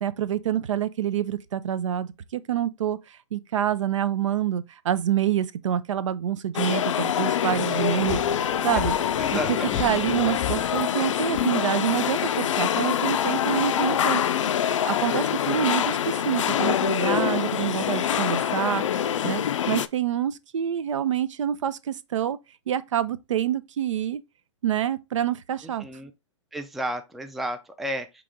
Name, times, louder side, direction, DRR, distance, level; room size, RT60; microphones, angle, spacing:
voice 1, 0.0-8.2 8.6-8.9 9.5-14.2 14.7-18.8 19.2-19.4 19.7-22.4 22.7-24.2 24.6-25.8, right 10 dB, 75° right, 0.5 m, -27 dB
sound 1, 6.5-19.9, left 9 dB, 80° left, 0.4 m, -25 dB
sound 2, 7.5-10.9 11.3-11.4, left 9 dB, 35° left, 0.6 m, -34 dB
voice 2, 8.7-10.1 15.0-15.4 25.6-26.1 26.5-28.2, right 1 dB, ahead, 0.3 m, -34 dB
4.8 x 3.0 x 3.7 m
hypercardioid pair, 130°, 16 cm